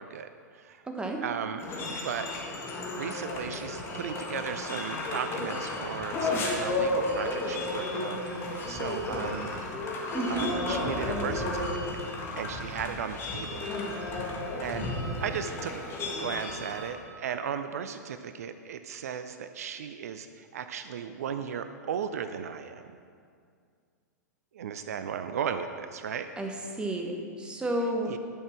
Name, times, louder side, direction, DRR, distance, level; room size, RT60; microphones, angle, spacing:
voice 1, 0.0-0.8 1.2-1.6 2.0-2.3 3.0-9.5 10.3-12.0 12.4-13.7 14.0-14.3 14.5-14.9 15.2-15.8 16.2-23.0 24.5-26.3 28.0-28.2, right 7 dB, 55° right, 9 dB, 0.5 m, -36 dB
voice 2, 0.9-1.2 10.1-10.5 26.4-28.1, right 1 dB, 10° right, 2 dB, 1.2 m, -31 dB
sound 1, 1.6-16.9, left 2 dB, 25° left, 1.8 m, -33 dB
11.0 x 6.6 x 5.8 m, 2.2 s
figure-of-eight pair, 100°, 10 cm